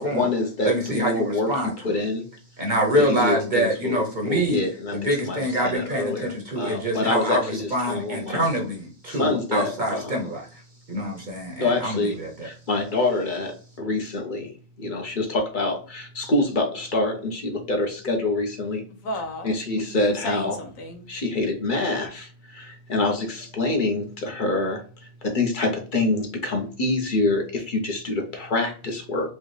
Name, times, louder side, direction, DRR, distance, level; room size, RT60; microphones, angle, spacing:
voice 1, 0.0-2.3 3.0-8.5 9.1-10.3 11.6-12.2 12.4-14.5 14.8-18.8 19.4-20.6 21.1-29.3, left 2 dB, 45° left, 2 dB, 0.9 m, -26 dB
voice 2, 0.6-2.0 2.6-4.6 4.9-10.5 10.9-12.5, right 1 dB, 40° right, -1 dB, 0.9 m, -26 dB
voice 3, 18.9-21.1, equal, 80° left, 5 dB, 1.2 m, -34 dB
4.5 x 2.4 x 3.2 m, 0.39 s
omnidirectional pair, 1.4 m